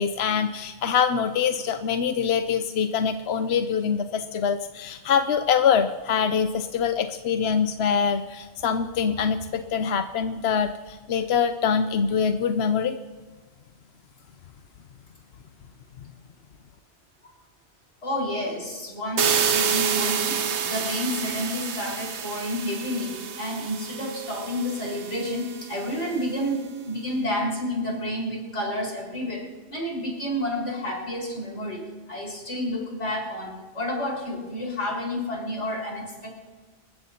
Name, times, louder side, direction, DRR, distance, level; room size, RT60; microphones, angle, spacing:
voice 1, 0.0-13.0, left 7 dB, 70° left, 8 dB, 0.9 m, -24 dB
voice 2, 18.0-36.3, left 1 dB, 90° left, -2 dB, 5.2 m, -30 dB
sound 1, 19.2-26.0, right 7 dB, 75° right, 1.2 m, -28 dB
27.5 x 15.0 x 2.8 m, 1.3 s
omnidirectional pair, 1.2 m